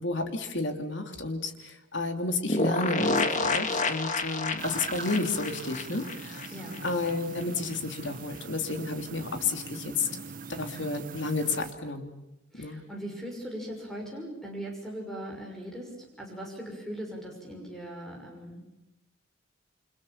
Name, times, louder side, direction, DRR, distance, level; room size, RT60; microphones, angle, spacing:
voice 1, 0.0-6.5 6.8-10.1 10.5-12.1 12.6-12.8, left 3 dB, 65° left, 6 dB, 3.0 m, -31 dB
sound 1, 2.5-7.1 7.4-7.5 7.7-7.8, left 3 dB, 40° left, 2.1 m, -29 dB
sound 2, 4.6-11.7, right 4 dB, 45° right, 0.9 m, -42 dB
voice 2, 6.5-6.9 12.5-18.7, right 1 dB, ahead, 0 dB, 6.2 m, -39 dB
29.0 x 25.5 x 7.3 m, 0.92 s
head